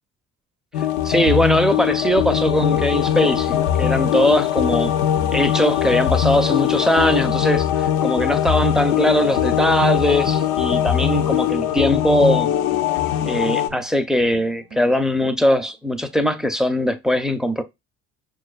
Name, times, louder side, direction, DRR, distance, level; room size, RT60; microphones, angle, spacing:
sound 1, 0.7-13.7, left 10 dB, 65° left, 0.5 m, -21 dB
sound 2, 0.8-15.7, right 2 dB, 45° right, 0.6 m, -43 dB
voice 1, 1.0-4.9 5.3-12.5 13.3-17.6, equal, ahead, 0.5 m, -20 dB
6.0 x 2.4 x 2.4 m
hypercardioid pair, 55°, 38 cm